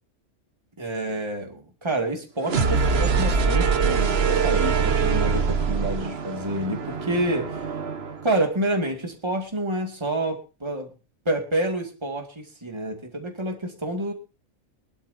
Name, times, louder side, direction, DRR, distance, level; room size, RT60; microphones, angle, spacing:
voice 1, 0.8-7.7 8.2-10.9 11.3-14.1, right 1 dB, 20° right, 2 dB, 2.3 m, -28 dB
sound 1, 2.4-8.3, right 5 dB, 50° right, 1.3 m, -23 dB
22.0 x 12.0 x 2.7 m, 0.31 s
omnidirectional pair, 1.4 m